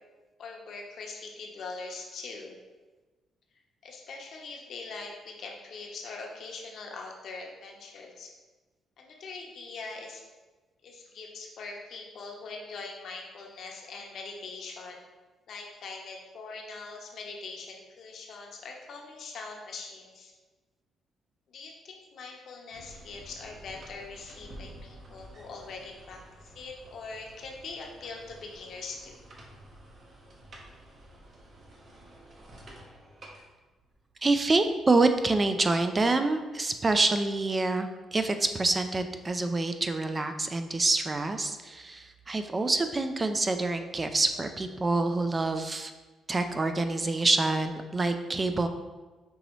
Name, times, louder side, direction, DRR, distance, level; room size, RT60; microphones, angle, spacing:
voice 1, 0.4-2.6 3.8-8.3 9.0-10.2 10.8-15.0 15.5-20.3 21.5-29.2, left 3 dB, 65° left, 0 dB, 0.8 m, -42 dB
sound 1, 22.7-34.1, right 1 dB, 45° right, 0.9 m, -51 dB
voice 2, 34.2-45.9 46.3-48.7, right 3 dB, 25° right, 8 dB, 0.3 m, -26 dB
5.3 x 2.9 x 3.0 m, 1.2 s
cardioid pair, 90°, 0 cm